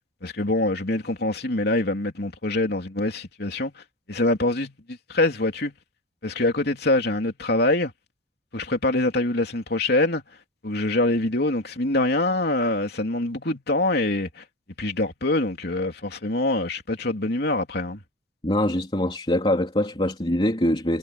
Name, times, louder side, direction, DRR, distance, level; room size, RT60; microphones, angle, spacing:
voice 1, 0.2-3.8 4.1-5.7 6.2-7.9 8.5-10.2 10.6-14.4 14.8-18.0, left 2 dB, 65° left, 3.3 m, -24 dB
voice 2, 18.4-21.0, left 1 dB, 30° left, 3.1 m, -23 dB
head